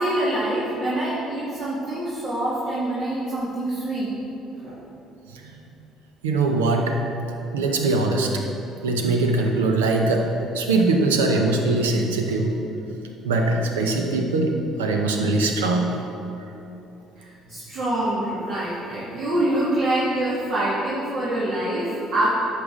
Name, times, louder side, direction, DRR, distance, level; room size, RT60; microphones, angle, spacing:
voice 1, 0.0-4.1 4.5-4.8 17.2-22.3, right 1 dB, 55° right, -8 dB, 1.8 m, -25 dB
voice 2, 6.2-7.0 7.5-8.3 8.8-10.3 10.5-12.6 13.2-16.0, right 3 dB, 80° right, 3 dB, 0.8 m, -21 dB
11.0 x 6.6 x 3.8 m, 3.0 s
hypercardioid pair, 55°, 0 cm